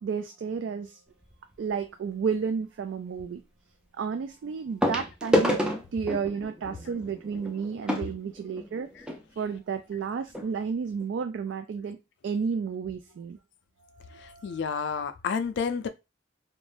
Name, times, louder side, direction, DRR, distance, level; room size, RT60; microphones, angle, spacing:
voice 1, 0.0-1.0 1.6-3.4 4.0-5.6 5.9-8.9 9.4-12.0 12.2-13.4 13.8-14.6, right 6 dB, 75° right, 0.3 m, -32 dB
sound 1, 1.2-1.5 3.2-3.3 4.8-9.2 10.0-10.1 10.3-10.5 11.0-11.1, equal, 5° right, 0.4 m, -29 dB
voice 2, 14.2-15.9, left 6 dB, 65° left, 0.3 m, -30 dB
2.5 x 2.1 x 3.2 m
head